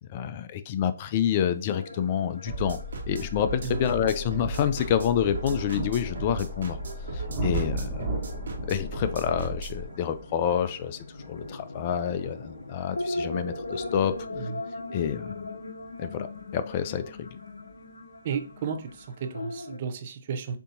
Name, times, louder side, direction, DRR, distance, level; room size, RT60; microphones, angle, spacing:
voice 1, 0.1-2.8 3.1-6.8 7.1-8.1 8.7-11.0 11.3-14.2 14.9-15.3 16.0-16.3 16.5-17.2, left 9 dB, 35° left, 0.4 m, -28 dB
sound 1, 1.8-19.8, left 2 dB, 80° left, 0.7 m, -40 dB
sound 2, 2.5-2.6 3.2-17.9 18.8-18.9, right 2 dB, 20° right, 1.4 m, -39 dB
sound 3, 2.5-9.8, right 1 dB, 65° right, 1.4 m, -35 dB
voice 2, 3.6-3.9 14.3-14.6 18.2-20.6, right 6 dB, 40° right, 0.7 m, -33 dB
6.8 x 2.8 x 2.6 m
figure-of-eight pair, 135°, 0 cm